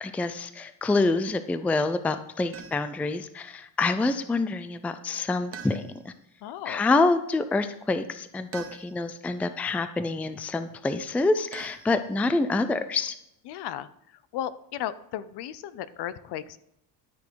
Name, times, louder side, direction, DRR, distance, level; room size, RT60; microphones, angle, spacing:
voice 1, 0.0-6.1 6.7-13.1, left 3 dB, 5° left, 11 dB, 0.3 m, -27 dB
sound 1, 2.5-3.1 5.5-6.3 8.5-9.2 11.5-12.4, right 7 dB, 30° right, 1.0 m, -45 dB
voice 2, 6.4-6.8 13.5-13.9 14.3-16.7, left 11 dB, 65° left, 16 dB, 0.7 m, -35 dB
13.0 x 6.3 x 4.6 m, 0.80 s
cardioid pair, 135°, 43 cm